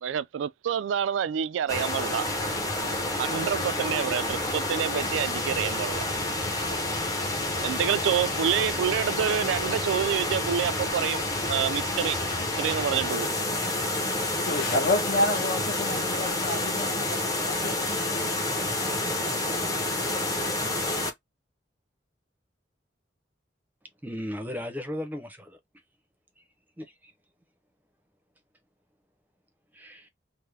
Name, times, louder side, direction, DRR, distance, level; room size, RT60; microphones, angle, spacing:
voice 1, 0.0-2.4 3.2-6.1 7.6-13.3, right 9 dB, 90° right, 0.3 m, -28 dB
sound 1, 1.7-21.1, left 2 dB, 20° left, 0.7 m, -29 dB
voice 2, 14.4-18.1, left 1 dB, 55° left, 0.8 m, -29 dB
voice 3, 24.0-25.6 26.8-27.1 29.7-30.1, left 1 dB, 10° right, 0.6 m, -36 dB
3.4 x 2.1 x 3.2 m
head